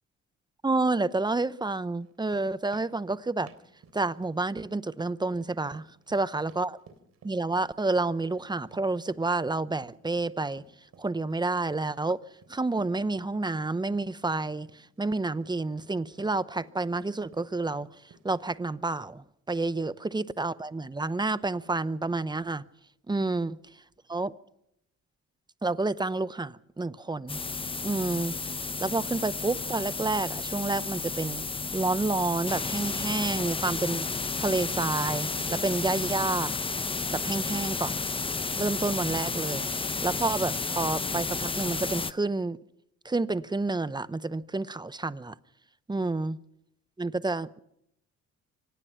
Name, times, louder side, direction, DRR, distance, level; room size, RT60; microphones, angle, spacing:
voice 1, 0.6-3.5 3.9-6.8 7.2-10.6 11.0-12.2 12.5-17.9 18.2-22.6 23.1-23.6 24.1-24.3 25.6-27.4 27.8-28.4 28.8-31.4 31.7-36.6 37.1-38.0 38.6-39.7 40.0-42.6 43.0-45.4 45.9-46.4 47.0-47.6, right 3 dB, 15° right, 0.7 m, -29 dB
sound 1, 2.0-18.4, right 5 dB, 55° right, 3.4 m, -56 dB
sound 2, 27.3-42.1, left 4 dB, 20° left, 0.7 m, -32 dB
24.5 x 18.5 x 5.8 m
cardioid pair, 90°, 30 cm